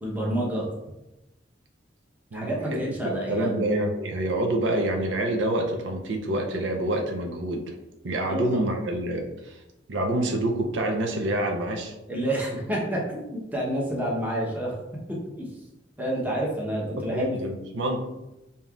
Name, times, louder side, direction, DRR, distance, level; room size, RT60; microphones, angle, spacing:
voice 1, 0.0-0.7 2.3-3.6 8.2-8.6 12.1-14.7 15.1-15.5 16.0-17.4, right 1 dB, 10° right, -3 dB, 0.8 m, -29 dB
voice 2, 2.3-7.8 8.0-9.6 9.9-11.9 17.0-18.0, right 1 dB, 85° right, 2 dB, 0.6 m, -27 dB
5.3 x 2.8 x 2.4 m, 0.96 s
head